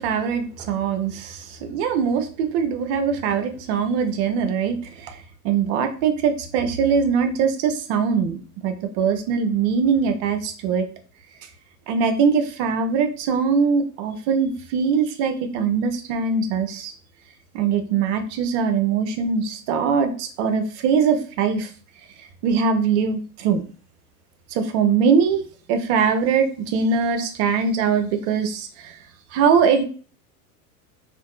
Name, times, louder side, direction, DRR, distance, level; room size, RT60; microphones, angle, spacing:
voice 1, 0.0-10.9 11.9-16.9 17.5-21.7 22.4-23.6 24.5-25.4 25.7-29.0 29.3-29.8, right 6 dB, 50° right, 7 dB, 0.6 m, -22 dB
2.6 x 2.5 x 2.3 m, 0.39 s
hypercardioid pair, 85°, 46 cm